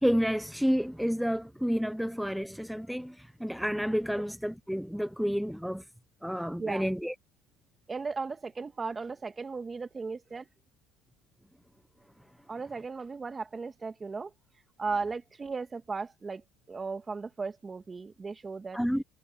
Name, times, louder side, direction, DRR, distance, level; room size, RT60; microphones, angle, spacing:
voice 1, 0.0-5.8 6.2-7.1 18.7-19.0, equal, ahead, 0.7 m, -30 dB
voice 2, 7.9-10.5 12.5-14.3 14.8-18.8, right 4 dB, 20° right, 2.1 m, -36 dB
supercardioid pair, 110°, 0 cm